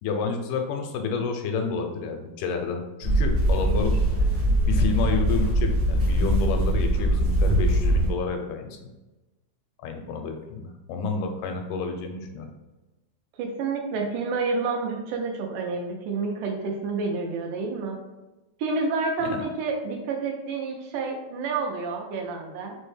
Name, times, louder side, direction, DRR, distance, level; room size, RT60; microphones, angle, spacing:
voice 1, 0.0-4.0 4.7-8.9 9.8-12.5 19.2-19.4, left 4 dB, 85° left, 4 dB, 2.1 m, -30 dB
sound 1, 3.0-8.1, right 1 dB, 70° right, 1.1 m, -22 dB
voice 2, 13.4-18.0 18.6-22.8, right 4 dB, 85° right, 2 dB, 2.2 m, -29 dB
5.2 x 2.1 x 3.2 m, 1.1 s
omnidirectional pair, 3.7 m